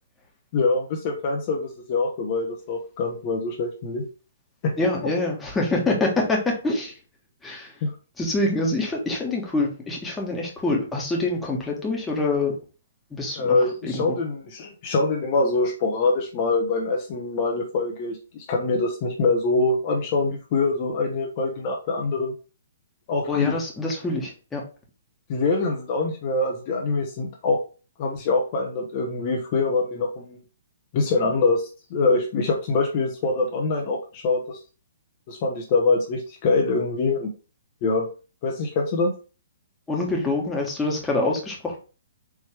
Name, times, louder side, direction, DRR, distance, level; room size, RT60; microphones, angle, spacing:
voice 1, 0.5-4.0 4.6-4.7 7.8-7.9 13.4-18.2 18.5-22.3 23.1-23.6 25.3-27.6 28.0-30.4 30.9-34.6 35.3-37.3 37.8-38.1 38.4-39.1, left 3 dB, 40° left, 0 dB, 1.1 m, -24 dB
voice 2, 4.8-6.9 7.4-7.7 8.2-12.5 13.1-13.6 13.8-14.2 23.3-24.6 39.9-41.8, left 2 dB, 10° left, -1 dB, 1.4 m, -25 dB
4.8 x 3.1 x 3.4 m, 0.34 s
figure-of-eight pair, 130°, 0 cm